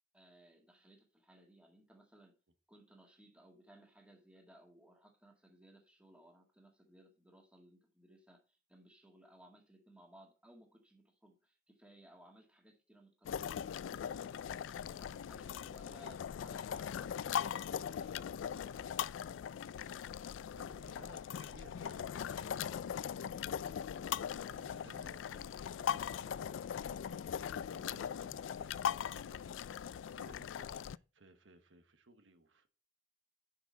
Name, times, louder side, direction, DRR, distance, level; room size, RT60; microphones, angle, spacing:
voice 1, 0.1-2.4 2.7-14.2 14.5-17.6 17.9-19.5 28.3-28.5, right 1 dB, 5° right, 2.0 m, -62 dB
sound 1, 13.2-31.0, left 8 dB, 85° left, 0.3 m, -40 dB
voice 2, 20.1-32.7, right 2 dB, 85° right, 1.3 m, -61 dB
10.5 x 6.1 x 4.0 m
head